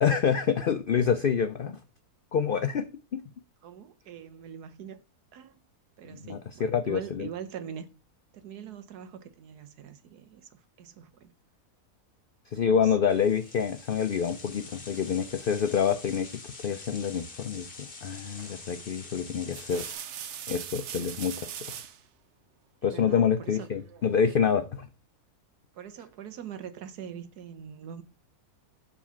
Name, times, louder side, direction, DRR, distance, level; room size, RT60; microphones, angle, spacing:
voice 1, 0.0-1.8 2.3-3.2 6.2-7.3 12.5-16.3 16.6-19.9 20.5-21.8 22.8-24.9, left 7 dB, 90° left, 0.4 m, -27 dB
voice 2, 3.6-5.0 5.3-5.6 6.0-7.9 8.3-11.3 12.6-12.9 22.8-23.7 25.7-28.0, right 8 dB, 90° right, 1.5 m, -43 dB
sound 1, 13.1-19.9, left 4 dB, 40° left, 1.4 m, -46 dB
sound 2, 18.4-18.7 19.3-22.0 23.5-24.1, right 9 dB, 60° right, 0.9 m, -40 dB
7.2 x 4.1 x 5.6 m
omnidirectional pair, 1.6 m